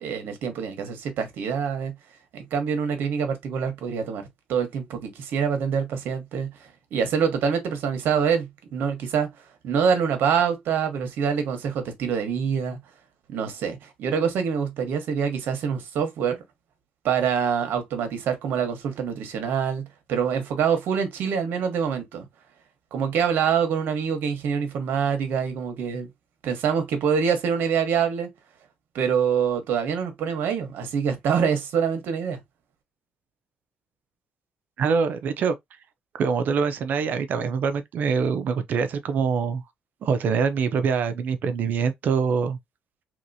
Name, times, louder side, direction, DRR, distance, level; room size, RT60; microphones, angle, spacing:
voice 1, 0.0-1.9 2.3-4.2 4.5-6.5 6.9-9.3 9.6-12.8 13.3-16.4 17.0-22.2 22.9-26.1 26.4-28.3 28.9-32.4, right 7 dB, 70° right, 1.1 m, -25 dB
voice 2, 34.8-35.5 36.2-39.6 40.0-42.6, right 5 dB, 55° right, 0.5 m, -24 dB
3.1 x 2.9 x 2.6 m
cardioid pair, 130°, 4 cm